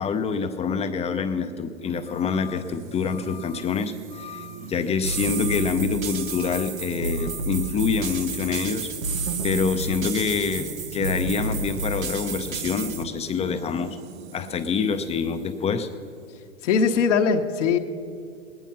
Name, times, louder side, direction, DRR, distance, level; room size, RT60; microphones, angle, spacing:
voice 1, 0.0-8.9 9.4-14.0 14.3-15.9, left 5 dB, 15° left, 7 dB, 0.6 m, -26 dB
sound 1, 1.8-16.5, right 5 dB, 50° right, 1.1 m, -42 dB
sound 2, 5.0-13.0, right 3 dB, 85° right, 1.2 m, -30 dB
voice 2, 16.6-17.8, left 5 dB, 65° left, 4 dB, 1.2 m, -20 dB
20.0 x 9.4 x 5.8 m, 2.4 s
hypercardioid pair, 105°, 39 cm